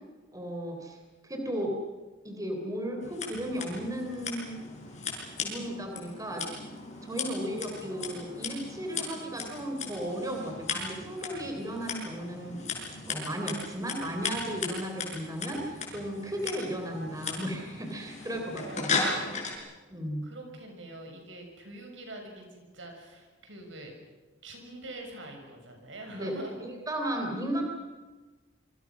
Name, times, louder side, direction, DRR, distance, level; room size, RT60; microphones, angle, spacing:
voice 1, 0.3-1.0 1.2-1.7 2.2-4.6 5.4-6.5 7.0-18.9 19.9-20.3 26.1-27.6, equal, 20° right, 2 dB, 3.7 m, -35 dB
Scissors, 3.0-19.6, left 4 dB, 40° left, 6.4 m, -37 dB
voice 2, 7.4-8.3 18.5-19.4 20.2-23.9 24.4-26.6, right 1 dB, 75° right, 3 dB, 6.6 m, -45 dB
27.5 x 24.5 x 6.2 m, 1.3 s
head